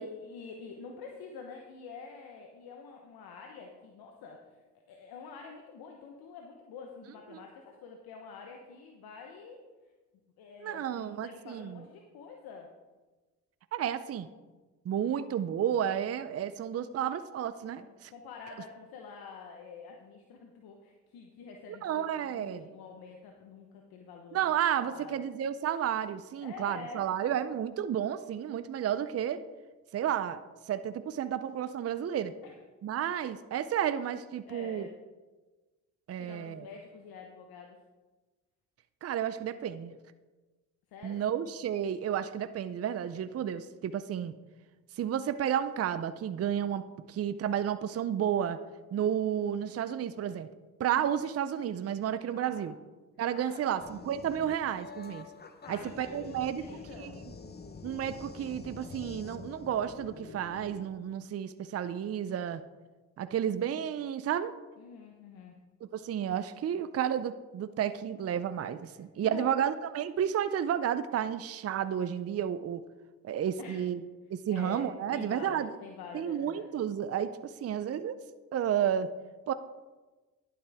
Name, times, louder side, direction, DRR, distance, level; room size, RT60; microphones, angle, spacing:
voice 1, 0.0-4.6 4.9-9.6 10.4-12.7 17.7-25.3 26.4-27.1 32.4-32.6 34.5-34.9 36.2-37.8 40.9-41.3 51.0-51.2 52.3-52.7 53.4-54.1 55.6-57.2 64.8-65.7 69.2-69.6 73.6-73.8 74.5-76.7, left 5 dB, 75° left, 2 dB, 1.1 m, -47 dB
voice 2, 10.6-11.8 13.7-14.3 14.9-18.1 21.8-22.7 24.3-29.4 29.9-30.4 30.7-32.3 32.8-34.9 36.1-36.7 39.0-39.9 41.0-44.3 45.0-48.6 48.9-50.5 50.8-52.7 53.2-55.3 55.7-56.6 57.0-57.1 57.8-62.6 63.2-64.5 65.9-72.8 73.2-74.0 74.3-75.7 76.1-78.2 78.5-79.1 79.5-79.6, right 9 dB, 40° right, 12 dB, 0.6 m, -32 dB
sound 1, 53.8-60.8, left 4 dB, 25° left, 1.0 m, -47 dB
11.0 x 8.6 x 3.5 m, 1.2 s
supercardioid pair, 60°, 37 cm